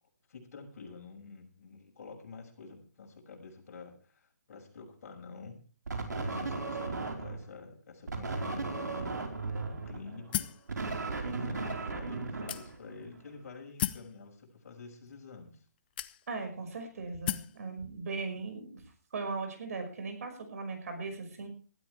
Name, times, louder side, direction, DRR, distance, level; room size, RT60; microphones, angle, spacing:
voice 1, 0.3-5.6 6.0-9.3 9.7-10.5 11.2-15.6, left 4 dB, 55° left, 1 dB, 6.3 m, -48 dB
sound 1, 5.9-7.5 8.1-13.2, right 3 dB, 90° right, 4.4 m, -36 dB
sound 2, 10.3-10.7 11.4-11.5 12.5-13.0 13.8-14.1 15.1-15.2 16.0-16.5 17.3-17.6, left 12 dB, 35° left, 0.7 m, -34 dB
voice 2, 16.3-18.7 19.1-21.5, right 4 dB, 60° right, 5 dB, 5.7 m, -38 dB
20.5 x 13.5 x 3.4 m, 0.39 s
hypercardioid pair, 160°, 9 cm